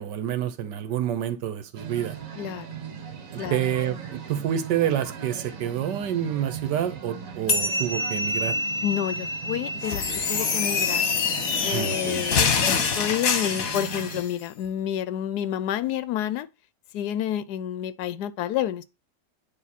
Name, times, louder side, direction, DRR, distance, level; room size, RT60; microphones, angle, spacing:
voice 1, 0.0-2.2 3.3-8.6 11.7-12.3, right 10 dB, 80° right, 1.4 m, -28 dB
sound 1, 1.8-14.2, right 7 dB, 55° right, 1.5 m, -39 dB
voice 2, 2.4-2.8 3.4-3.6 8.8-11.0 11.6-12.4 12.7-16.5 16.9-18.8, left 11 dB, 75° left, 1.2 m, -29 dB
sound 2, 7.5-12.4, left 1 dB, 40° left, 0.6 m, -30 dB
sound 3, 9.8-14.3, left 6 dB, 55° left, 1.5 m, -25 dB
9.5 x 3.3 x 4.2 m
omnidirectional pair, 1.8 m